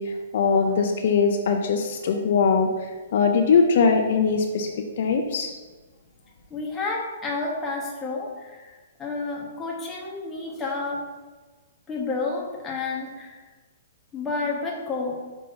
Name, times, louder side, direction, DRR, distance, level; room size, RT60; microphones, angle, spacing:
voice 1, 0.0-4.7 5.0-5.6, left 5 dB, 55° left, 4 dB, 0.6 m, -21 dB
voice 2, 6.5-11.0 11.9-13.4 14.1-15.1, left 3 dB, 10° left, -3 dB, 1.1 m, -30 dB
5.7 x 4.9 x 3.9 m, 1.3 s
hypercardioid pair, 160°, 0 cm